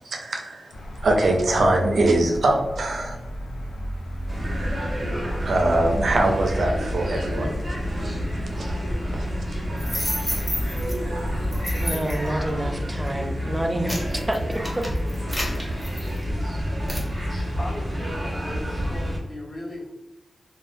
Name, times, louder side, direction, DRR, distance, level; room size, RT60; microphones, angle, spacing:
voice 1, 0.0-0.7 1.0-3.2 5.4-7.5 9.1-9.3, right 2 dB, 75° right, 2 dB, 0.5 m, -22 dB
sound 1, 0.7-12.8, equal, 85° left, 0.4 m, -35 dB
sound 2, 4.3-19.2, equal, 35° right, 0.8 m, -29 dB
sound 3, 9.8-10.9 11.5-12.3 12.9-13.1 13.6-16.4 16.9-17.1, equal, 10° left, 0.8 m, -31 dB
voice 2, 11.8-14.9, right 1 dB, 15° right, 3 dB, 0.4 m, -28 dB
voice 3, 17.5-19.9, left 1 dB, 40° left, -4 dB, 0.9 m, -37 dB
2.2 x 2.0 x 3.0 m, 0.97 s
cardioid pair, 70°, 0 cm